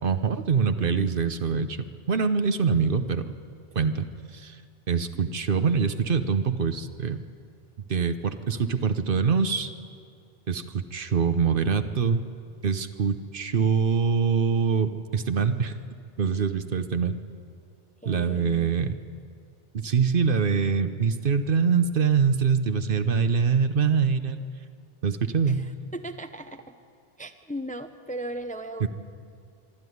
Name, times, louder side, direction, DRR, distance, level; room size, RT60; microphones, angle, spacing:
voice 1, 0.0-1.8 2.1-3.2 3.7-4.1 4.3-4.6 4.9-7.2 7.9-9.7 10.5-12.2 12.6-15.7 16.2-17.2 18.1-18.9 19.7-24.4 25.0-25.7 28.8-28.9, right 6 dB, 60° right, 10 dB, 1.0 m, -24 dB
voice 2, 18.0-18.7 25.5-26.7 27.2-28.9, right 1 dB, 10° left, 9 dB, 0.6 m, -37 dB
25.0 x 12.0 x 9.4 m, 2.3 s
omnidirectional pair, 1.0 m